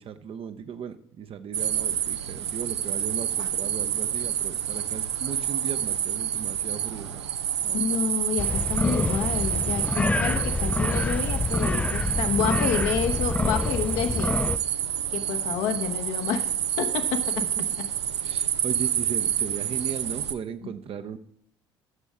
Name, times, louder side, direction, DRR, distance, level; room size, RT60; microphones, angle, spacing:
voice 1, 0.0-7.2 7.6-8.0 17.6-17.7 18.2-21.2, right 7 dB, 40° right, 10 dB, 0.6 m, -37 dB
sound 1, 1.5-20.3, right 9 dB, 80° right, 0.4 m, -28 dB
voice 2, 7.7-14.5 15.1-16.5 16.8-17.9 20.6-20.7, left 7 dB, 60° left, 7 dB, 0.9 m, -29 dB
sound 2, 8.4-14.6, left 3 dB, 10° left, 0.3 m, -27 dB
12.5 x 7.1 x 3.5 m, 0.65 s
figure-of-eight pair, 50°, 14 cm